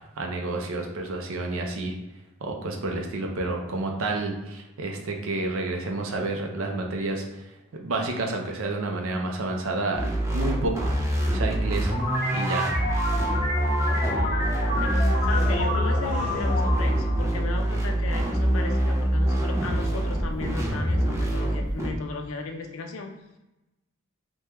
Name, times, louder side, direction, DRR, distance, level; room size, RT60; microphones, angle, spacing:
voice 1, 0.2-1.9 2.4-7.2 7.7-10.0 10.3-10.9 11.3-11.9 12.3-12.7, right 2 dB, 75° right, 2 dB, 0.5 m, -29 dB
sound 1, 9.9-21.9, right 1 dB, 15° right, 0.5 m, -25 dB
sound 2, 11.9-18.2, left 1 dB, 45° left, 0.9 m, -30 dB
sound 3, 13.3-21.2, left 1 dB, 55° right, 0.8 m, -39 dB
voice 2, 13.8-23.4, left 3 dB, 70° left, 4 dB, 0.4 m, -36 dB
3.4 x 2.2 x 2.9 m, 0.97 s
head